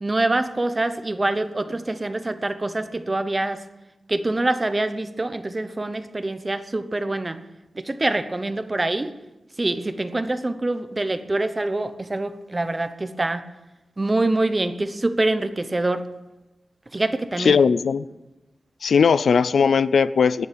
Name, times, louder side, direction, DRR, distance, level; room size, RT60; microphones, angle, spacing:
voice 1, 0.0-3.6 4.1-7.4 7.8-9.1 9.6-13.4 14.0-16.1 16.9-17.6, right 2 dB, 20° right, 11 dB, 0.8 m, -25 dB
voice 2, 17.4-18.1 18.8-20.5, left 6 dB, 65° left, 16 dB, 0.4 m, -18 dB
19.0 x 7.0 x 8.7 m, 1.0 s
wide cardioid pair, 180°, 0 cm